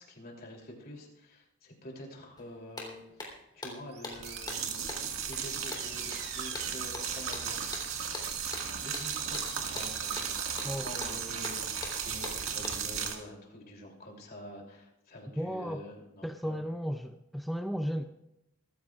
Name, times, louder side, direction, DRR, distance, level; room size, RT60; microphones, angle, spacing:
voice 1, 0.0-3.0 3.5-7.6 8.8-10.6 10.8-16.6, left 1 dB, 50° left, 0 dB, 3.1 m, -47 dB
sound 1, 2.4-2.5 2.8-13.0, left 2 dB, 20° left, 3.3 m, -43 dB
sound 2, 3.9-11.9, right 6 dB, 55° right, 2.2 m, -47 dB
sound 3, 4.1-13.2, right 7 dB, 85° right, 1.9 m, -36 dB
voice 2, 15.4-15.8 16.2-18.0, equal, ahead, 6 dB, 0.4 m, -34 dB
24.5 x 14.0 x 2.4 m, 0.87 s
head